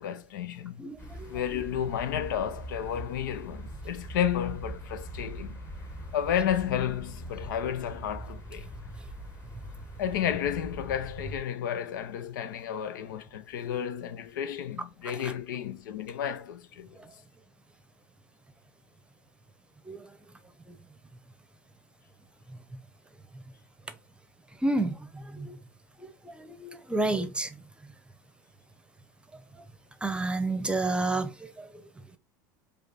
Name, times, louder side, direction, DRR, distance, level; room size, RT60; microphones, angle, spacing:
voice 1, 0.0-0.9 1.3-5.6 6.1-8.7 10.0-16.9, left 9 dB, 85° left, 0.6 m, -32 dB
voice 2, 0.8-1.4 15.2-15.3 19.9-20.1 20.7-20.8 24.6-25.6 26.0-27.6 30.0-31.8, right 2 dB, 10° right, 0.8 m, -31 dB
sound 1, 1.0-11.4, equal, 25° left, 1.6 m, -42 dB
5.0 x 2.5 x 4.0 m
hypercardioid pair, 95°, 10 cm